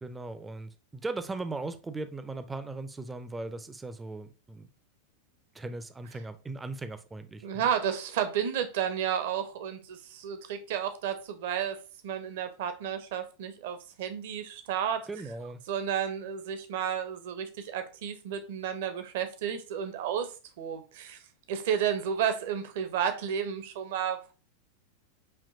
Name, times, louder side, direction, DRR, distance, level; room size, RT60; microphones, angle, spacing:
voice 1, 0.0-4.7 5.5-7.7 15.1-15.6, right 2 dB, 10° right, 0.5 m, -38 dB
voice 2, 7.4-11.8 12.0-15.0 15.7-20.3 20.6-21.2 21.5-24.3, right 8 dB, 55° right, 0.8 m, -32 dB
6.6 x 2.9 x 2.7 m
figure-of-eight pair, 90°, 0 cm